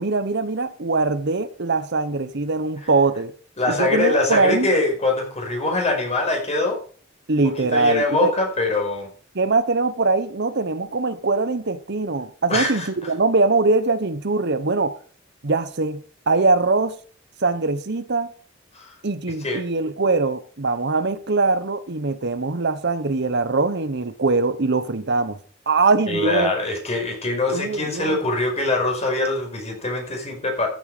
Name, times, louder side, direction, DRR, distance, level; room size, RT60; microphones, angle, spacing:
voice 1, 0.0-3.3 3.7-4.7 7.3-8.3 9.3-14.9 15.4-16.0 16.3-16.9 17.4-18.3 19.0-25.4 25.7-26.5 27.5-28.2, right 3 dB, 60° right, 1.0 m, -22 dB
voice 2, 3.6-6.8 7.4-9.1 12.5-12.9 18.7-18.9 19.4-19.6 26.1-30.7, left 2 dB, 35° left, 5.4 m, -23 dB
14.5 x 9.0 x 5.0 m
head